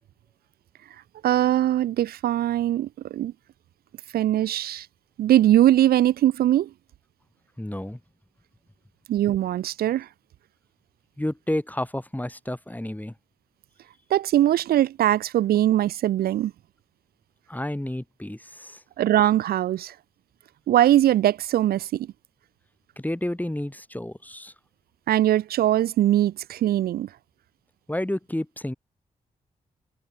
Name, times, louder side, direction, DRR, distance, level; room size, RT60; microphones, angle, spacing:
voice 1, 1.2-3.3 4.1-4.9 5.2-6.7 9.1-10.1 14.1-16.5 19.0-20.0 20.7-22.1 25.1-27.1, right 12 dB, 80° right, 0.4 m, -21 dB
voice 2, 7.6-8.0 11.2-13.1 17.5-18.8 23.0-24.5 27.9-28.7, left 1 dB, 10° left, 3.9 m, -30 dB
supercardioid pair, 40°, 16 cm